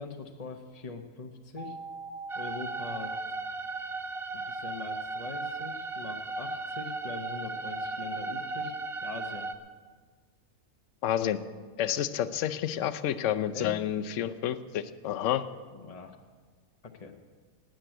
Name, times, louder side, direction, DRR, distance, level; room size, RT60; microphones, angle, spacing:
voice 1, 0.0-1.8 2.4-3.1 4.3-8.7 9.0-9.5 13.5-13.8 15.7-16.2 17.0-17.1, left 4 dB, 35° left, 4 dB, 0.7 m, -42 dB
sound 1, 1.6-3.2, right 3 dB, 20° right, 2.8 m, -41 dB
sound 2, 2.3-9.5, right 3 dB, 60° right, 0.3 m, -36 dB
voice 2, 11.0-11.4 11.8-15.5, left 11 dB, 60° left, 12 dB, 0.9 m, -29 dB
13.0 x 9.0 x 9.0 m, 1.5 s
omnidirectional pair, 1.6 m